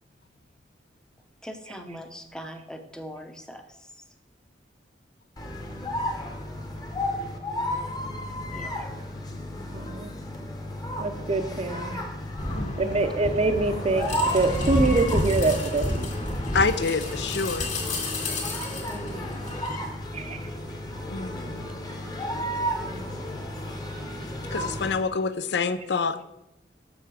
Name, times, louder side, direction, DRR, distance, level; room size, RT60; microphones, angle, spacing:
voice 1, 1.4-3.6 8.5-8.8 18.9-19.4 22.8-23.1, equal, 5° left, 6 dB, 0.7 m, -41 dB
sound 1, 5.4-25.0, equal, 20° left, 1.0 m, -33 dB
voice 2, 9.7-10.1 11.0-12.0 12.8-15.9 20.1-20.4, right 3 dB, 35° right, 9 dB, 0.6 m, -25 dB
sound 2, 12.4-19.8, left 1 dB, 40° left, 2.1 m, -30 dB
voice 3, 12.5-13.1 16.5-17.7 21.1-21.8 24.5-26.2, left 4 dB, 65° left, 13 dB, 0.5 m, -27 dB
7.0 x 6.6 x 4.8 m, 0.89 s
head